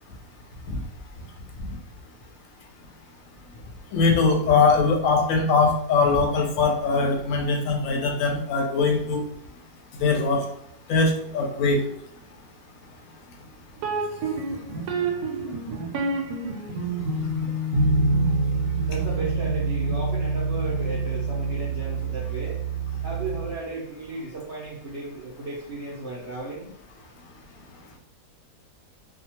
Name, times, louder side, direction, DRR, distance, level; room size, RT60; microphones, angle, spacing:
voice 1, 3.9-9.2 10.0-10.4 10.9-11.8, left 4 dB, 65° left, 2 dB, 0.9 m, -21 dB
sound 1, 13.8-23.6, right 3 dB, 75° right, 1.1 m, -26 dB
voice 2, 18.9-22.6 23.0-26.7, right 3 dB, 60° right, -6 dB, 0.7 m, -35 dB
2.7 x 2.3 x 2.8 m, 0.67 s
omnidirectional pair, 1.8 m